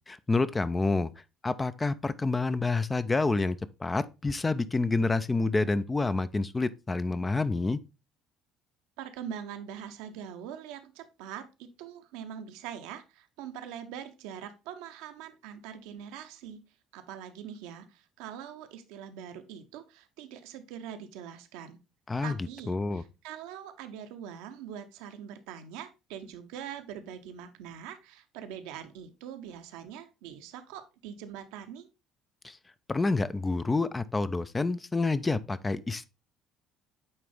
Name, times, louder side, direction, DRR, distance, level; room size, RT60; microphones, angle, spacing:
voice 1, 0.1-1.1 1.4-7.8 22.1-22.4 22.7-23.0 32.4-32.6 32.9-36.0, left 3 dB, 20° left, 0.4 m, -28 dB
voice 2, 9.0-21.8 22.2-31.9, right 9 dB, 65° right, 0.7 m, -43 dB
8.7 x 3.3 x 3.4 m
figure-of-eight pair, 55°, 0 cm